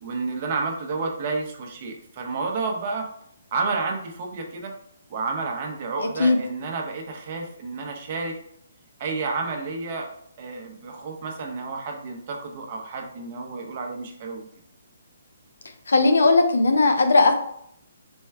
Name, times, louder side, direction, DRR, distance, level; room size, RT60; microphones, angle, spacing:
voice 1, 0.0-3.1 3.5-4.8 5.1-8.4 9.0-10.1 10.4-14.5, right 4 dB, 40° right, 2 dB, 0.8 m, -30 dB
voice 2, 15.9-17.3, left 3 dB, 85° left, 6 dB, 0.7 m, -17 dB
4.4 x 2.2 x 4.6 m, 0.69 s
hypercardioid pair, 155°, 0 cm